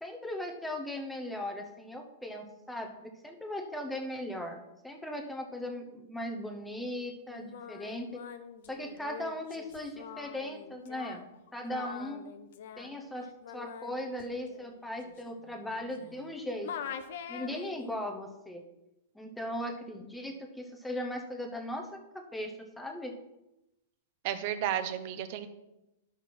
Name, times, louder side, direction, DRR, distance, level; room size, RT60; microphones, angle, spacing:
voice 1, 0.0-8.2 8.7-11.2 11.5-12.3 12.8-13.3 13.5-16.7 17.3-18.6 19.1-23.2, left 1 dB, 5° left, 2 dB, 0.8 m, -38 dB
Singing, 7.3-16.3 16.6-18.0, left 8 dB, 60° left, 0.8 m, -45 dB
voice 2, 24.2-25.5, right 10 dB, 45° right, 11 dB, 0.8 m, -32 dB
11.0 x 6.1 x 4.3 m, 0.95 s
supercardioid pair, 160°, 0 cm